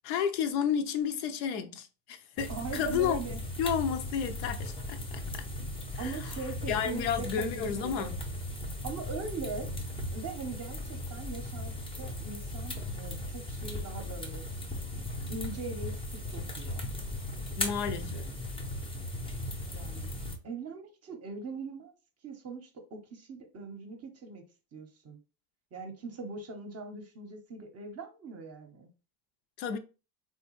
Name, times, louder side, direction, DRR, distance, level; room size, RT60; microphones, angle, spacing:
voice 1, 0.0-3.2 3.6-5.2 5.9-6.2 6.7-8.2 17.6-18.3 29.6-29.8, left 8 dB, 80° left, 0.6 m, -31 dB
sound 1, 2.4-20.4, left 1 dB, 10° left, 0.5 m, -37 dB
voice 2, 2.5-3.4 6.0-7.3 7.5-8.1 8.8-9.7 10.1-14.4 15.3-15.9 16.3-16.8 19.7-20.1 20.4-21.9 22.2-24.4 24.7-25.2 25.7-28.9, right 4 dB, 30° right, 0.7 m, -41 dB
3.3 x 2.2 x 3.0 m
supercardioid pair, 105°, 50 cm